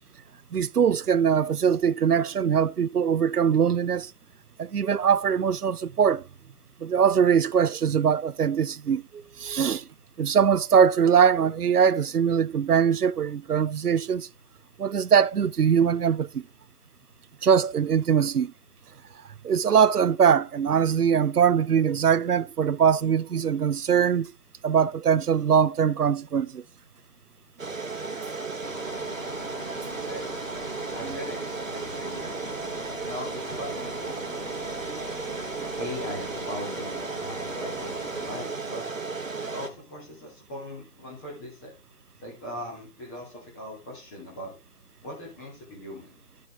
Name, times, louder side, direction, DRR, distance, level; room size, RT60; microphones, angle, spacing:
voice 1, 0.5-4.1 4.6-6.2 6.8-9.9 10.2-14.3 14.8-16.4 17.4-18.5 19.4-24.3 24.6-26.6 31.0-31.2 34.9-35.0, right 7 dB, 90° right, 0.6 m, -22 dB
sound 1, 27.6-39.7, right 4 dB, 60° right, 1.6 m, -34 dB
sound 2, 28.6-38.5, left 3 dB, 30° left, 1.1 m, -43 dB
voice 2, 30.0-30.6 30.9-32.4 33.0-34.4 35.8-38.9 39.5-41.7 42.2-44.5 45.0-46.2, left 1 dB, 10° left, 2.3 m, -39 dB
12.0 x 6.5 x 3.4 m
figure-of-eight pair, 155°, 45 cm